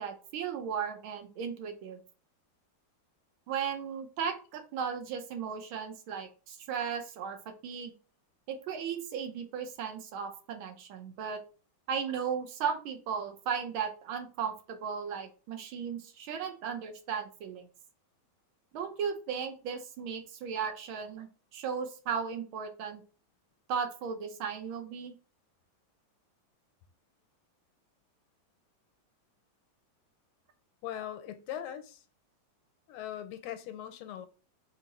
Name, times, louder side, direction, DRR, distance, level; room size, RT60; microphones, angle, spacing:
voice 1, 0.0-2.0 3.5-7.4 7.6-7.9 8.5-11.4 11.9-17.7 18.7-23.0 23.7-25.1, right 7 dB, 80° right, 1.5 m, -36 dB
voice 2, 30.8-32.0 32.9-34.3, left 11 dB, 85° left, 1.5 m, -40 dB
3.6 x 2.8 x 4.0 m
omnidirectional pair, 2.3 m